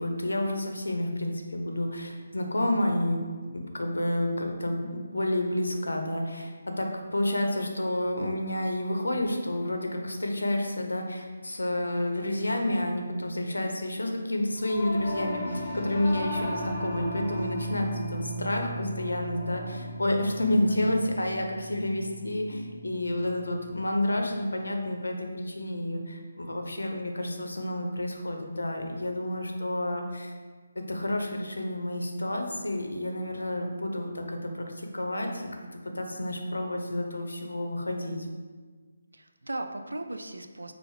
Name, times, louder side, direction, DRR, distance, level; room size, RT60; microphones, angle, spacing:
voice 1, 0.0-30.3 30.8-38.3, left 1 dB, 90° left, 3 dB, 0.7 m, -30 dB
Singing / Musical instrument, 14.5-24.1, equal, 15° left, 1.0 m, -37 dB
voice 2, 20.6-20.9 39.1-40.7, right 2 dB, 90° right, 6 dB, 0.4 m, -37 dB
6.4 x 2.5 x 3.2 m, 1.5 s
figure-of-eight pair, 155°, 0 cm